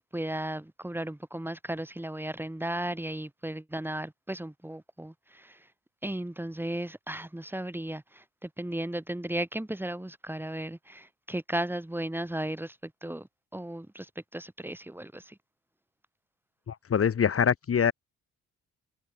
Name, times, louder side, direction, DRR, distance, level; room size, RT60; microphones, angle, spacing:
voice 1, 0.0-5.6 6.0-13.3 13.5-15.3, right 1 dB, 5° right, 7.8 m, -35 dB
voice 2, 16.7-17.9, left 7 dB, 50° left, 3.0 m, -24 dB
cardioid pair, 90°, 30 cm